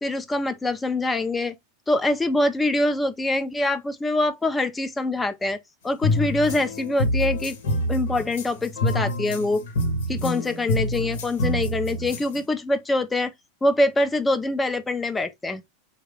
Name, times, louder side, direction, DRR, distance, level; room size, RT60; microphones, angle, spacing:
voice 1, 0.0-1.5 1.9-7.6 7.9-9.6 10.1-13.3 13.6-15.6, left 2 dB, 15° left, 0.7 m, -24 dB
sound 1, 6.0-12.4, left 1 dB, 80° left, 1.1 m, -26 dB
3.8 x 2.3 x 3.5 m
hypercardioid pair, 110°, 0 cm